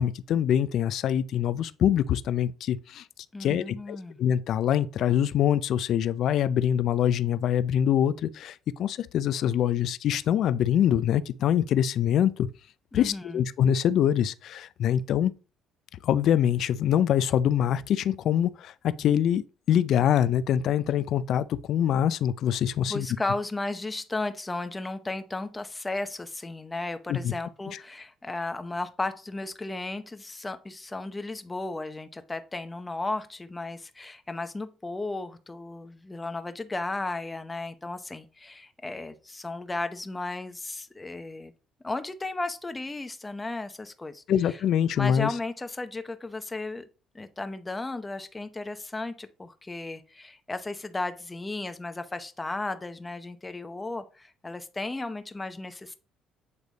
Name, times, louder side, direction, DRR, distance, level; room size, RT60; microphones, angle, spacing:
voice 1, 0.0-3.1 3.4-12.5 12.9-15.3 16.0-23.1 27.1-27.3 27.7-27.8 44.3-45.3, left 10 dB, 65° left, 0.4 m, -24 dB
voice 2, 3.3-4.2 12.9-13.4 22.9-41.5 41.8-44.2 44.5-44.6 45.0-46.8 47.1-56.0, left 2 dB, 15° left, 0.8 m, -34 dB
8.3 x 3.3 x 4.0 m
cardioid pair, 100°, 0 cm